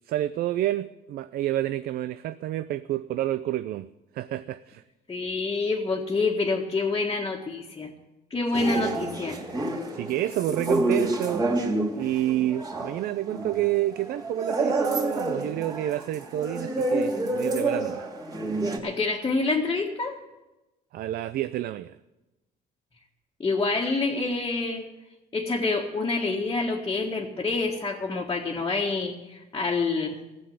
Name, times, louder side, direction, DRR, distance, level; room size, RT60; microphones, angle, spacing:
voice 1, 0.1-3.9 4.1-4.8 8.5-9.0 9.9-11.5 11.9-18.1 20.9-22.0, right 13 dB, 65° right, 0.5 m, -29 dB
voice 2, 5.1-7.9 8.3-9.4 18.8-20.2 23.4-24.8 25.3-30.2, left 3 dB, 25° left, 1.7 m, -27 dB
sound 1, 8.5-18.8, right 2 dB, 20° right, 2.8 m, -28 dB
15.0 x 7.9 x 9.4 m
cardioid pair, 110°, 17 cm